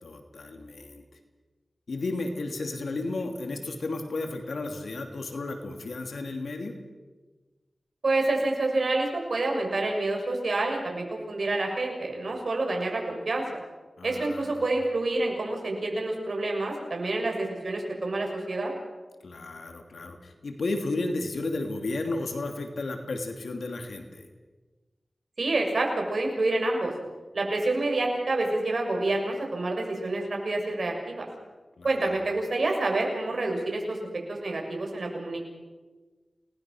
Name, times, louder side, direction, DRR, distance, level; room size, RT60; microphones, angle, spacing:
voice 1, 0.0-1.0 1.9-6.8 14.0-14.6 19.2-24.3 31.8-32.1, left 2 dB, 85° left, 5 dB, 2.8 m, -33 dB
voice 2, 8.0-13.4 14.0-18.7 25.4-26.9 27.3-31.3 31.8-34.0 34.3-35.4, right 2 dB, 65° right, 1 dB, 6.7 m, -28 dB
29.0 x 20.0 x 6.4 m, 1.3 s
wide cardioid pair, 65°, 0 cm